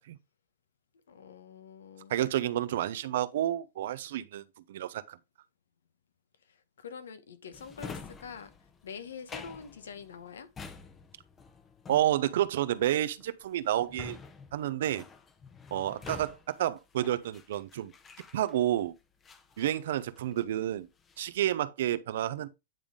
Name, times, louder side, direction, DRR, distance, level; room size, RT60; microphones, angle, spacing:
voice 1, 1.1-2.1 6.8-8.5 8.8-10.5, left 6 dB, 85° left, 1.0 m, -45 dB
voice 2, 2.1-5.2 11.9-14.2 14.5-15.0 15.7-17.9 18.3-18.9 19.6-20.9 21.2-22.5, right 12 dB, 70° right, 0.6 m, -30 dB
Drawer open or close, 7.5-18.8 19.2-20.5 20.8-21.4, left 5 dB, 20° left, 0.8 m, -48 dB
8.9 x 3.5 x 3.8 m
hypercardioid pair, 125°, 0 cm